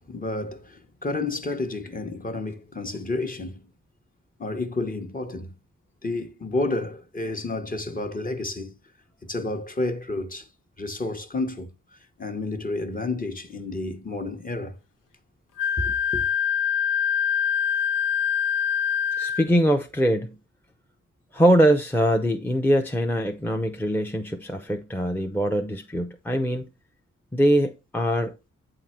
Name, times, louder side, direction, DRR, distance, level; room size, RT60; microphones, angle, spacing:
voice 1, 0.1-3.6 4.4-5.5 6.0-8.7 9.2-10.5 10.8-11.7 12.2-14.8 15.8-16.2, left 2 dB, 25° left, 1.1 m, -30 dB
Wind instrument woodwind instrument, 15.6-19.4, left 8 dB, 85° left, 0.8 m, -24 dB
voice 2, 19.2-20.4 21.3-26.7 27.3-28.5, equal, 5° left, 0.7 m, -22 dB
8.5 x 3.8 x 4.4 m
cardioid pair, 75°, 31 cm